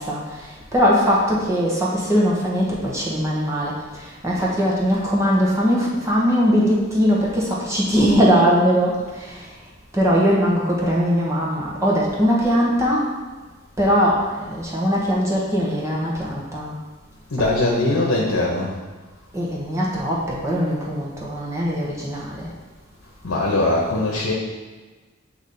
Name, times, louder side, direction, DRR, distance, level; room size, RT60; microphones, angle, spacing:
voice 1, 0.0-9.5 9.9-13.1 13.8-16.8 17.4-17.6 19.3-22.5, equal, 15° right, -5 dB, 1.2 m, -20 dB
voice 2, 17.3-18.7 23.2-24.3, left 2 dB, 70° left, -4 dB, 1.0 m, -21 dB
8.2 x 3.0 x 4.1 m, 1.3 s
head